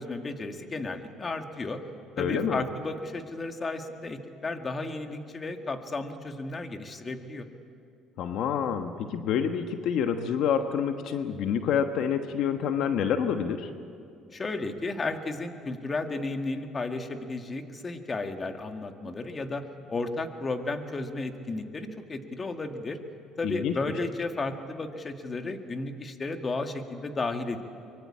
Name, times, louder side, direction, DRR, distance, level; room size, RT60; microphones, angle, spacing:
voice 1, 0.0-1.8 2.2-7.5 14.3-23.0 23.4-27.6, left 3 dB, 25° left, 6 dB, 1.9 m, -33 dB
voice 2, 2.2-2.6 8.2-13.7 23.4-23.7, left 8 dB, 70° left, 7 dB, 1.3 m, -27 dB
24.5 x 23.5 x 8.7 m, 2.6 s
cardioid pair, 105°, 0 cm